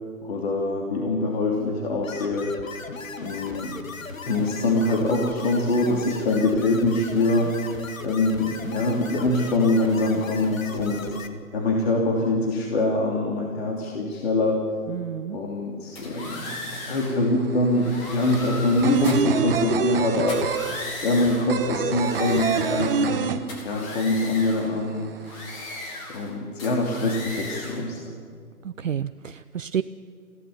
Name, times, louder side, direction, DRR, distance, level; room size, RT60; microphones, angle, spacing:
voice 1, 0.2-2.6 3.2-3.8 4.2-7.6 8.0-11.1 11.5-14.6 15.3-20.4 21.0-23.2 23.6-25.1 26.1-28.0, left 2 dB, 40° left, -1 dB, 3.1 m, -24 dB
sound 1, 2.0-11.3, left 4 dB, 60° left, 2.2 m, -38 dB
voice 2, 14.9-15.4 28.6-29.8, right 9 dB, 60° right, 12 dB, 0.7 m, -30 dB
sound 2, 16.0-17.2 17.7-19.4 20.2-21.5 21.9-23.2 23.5-24.7 25.2-26.3 26.6-27.9, left 2 dB, 20° left, 3.6 m, -37 dB
sound 3, 17.1-17.2 17.4-24.0 24.3-24.4 24.7-25.5, right 6 dB, 40° right, 1.3 m, -26 dB
22.0 x 16.5 x 7.2 m, 2.3 s
hypercardioid pair, 155°, 45 cm